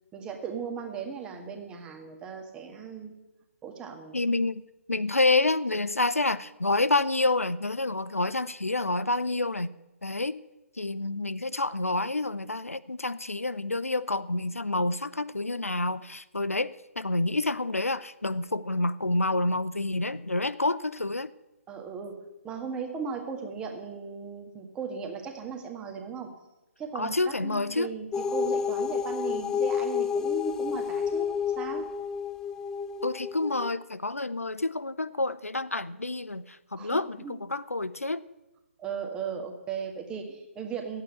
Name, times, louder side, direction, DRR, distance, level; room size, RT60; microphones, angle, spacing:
voice 1, 0.1-3.2 3.6-4.2 21.7-26.4 26.8-27.2 27.4-31.9 36.8-37.4 38.8-41.0, right 6 dB, 10° right, 3 dB, 1.7 m, -37 dB
voice 2, 4.1-4.6 4.9-9.7 10.0-10.4 10.8-21.3 26.9-27.9 33.0-38.2, left 2 dB, 80° left, 14 dB, 0.7 m, -28 dB
sound 1, 28.1-33.7, left 7 dB, 5° left, 0.4 m, -30 dB
14.0 x 8.7 x 9.0 m, 0.98 s
figure-of-eight pair, 135°, 8 cm